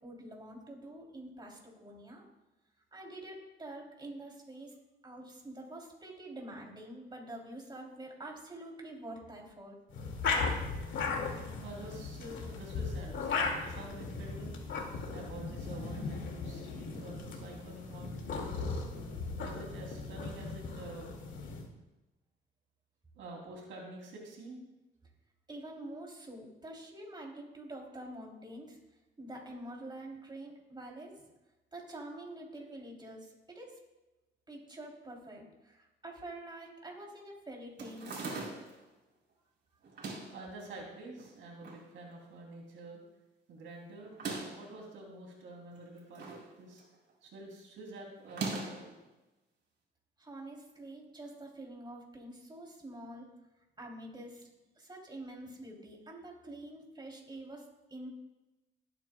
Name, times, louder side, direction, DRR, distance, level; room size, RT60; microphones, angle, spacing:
voice 1, 0.0-2.2 2.9-4.7 5.0-9.8 25.5-28.8 29.2-31.3 31.7-33.8 34.5-38.2 50.2-53.3 53.8-54.5 54.8-58.1, right 1 dB, 20° right, -1 dB, 3.1 m, -46 dB
sound 1, 9.9-21.7, left 4 dB, 75° left, 2.2 m, -37 dB
voice 2, 11.6-14.6 15.1-18.8 19.3-21.2 23.1-24.6 40.3-43.0 43.5-44.1 44.4-46.8 47.2-49.0, right 2 dB, 80° right, -1 dB, 3.0 m, -48 dB
sound 2, 37.8-38.8 39.8-40.4 41.2-41.8 42.2-42.3 42.5-42.6 44.0-44.7 45.7-46.5 46.8-47.1 48.2-48.9, right 3 dB, 60° right, 3.7 m, -40 dB
20.0 x 9.0 x 2.3 m, 1.0 s
cardioid pair, 90°, 20 cm